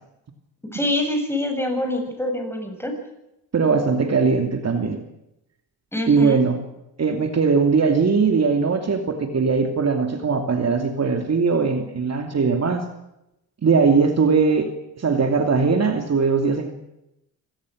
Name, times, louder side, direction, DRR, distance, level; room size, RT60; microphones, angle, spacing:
voice 1, 0.7-2.9 5.9-6.4, left 1 dB, 5° left, 4 dB, 7.8 m, -25 dB
voice 2, 3.5-5.0 6.1-6.6 7.0-12.8 13.6-14.7 15.0-16.7, right 5 dB, 40° right, 5 dB, 2.7 m, -20 dB
25.5 x 18.0 x 6.4 m, 0.86 s
cardioid pair, 90°, 38 cm